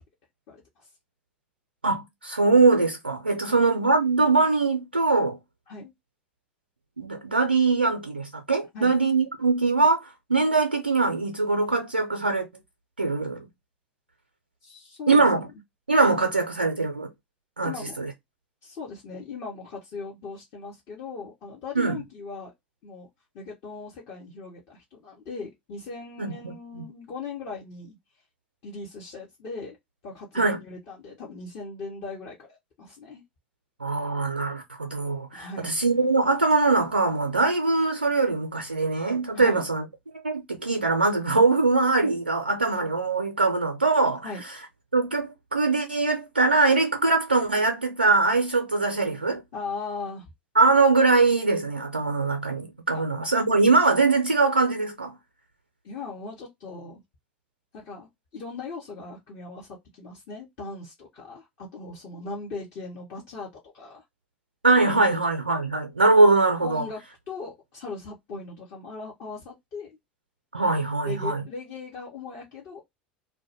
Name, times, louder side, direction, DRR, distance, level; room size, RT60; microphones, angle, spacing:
voice 1, 0.5-0.9 3.5-3.6 5.7-5.9 8.7-8.9 14.6-15.5 17.6-18.1 18.6-22.5 22.8-23.1 23.3-28.0 28.6-29.8 30.0-33.2 35.3-35.7 39.3-39.7 44.2-44.4 49.5-50.3 52.9-53.0 55.8-57.0 57.7-64.0 64.9-65.3 66.6-67.0 67.3-70.0 71.0-72.8, left 4 dB, 50° left, 0.7 m, -39 dB
voice 2, 1.8-5.4 7.0-12.5 13.0-13.5 15.1-15.4 15.9-17.1 17.6-17.7 18.0-18.1 21.8-22.0 26.2-26.9 30.4-30.6 33.8-39.8 40.2-44.3 44.9-49.4 50.6-55.1 64.6-66.8 70.5-71.4, right 3 dB, 90° right, 0.4 m, -22 dB
2.1 x 2.1 x 2.7 m
figure-of-eight pair, 80°, 5 cm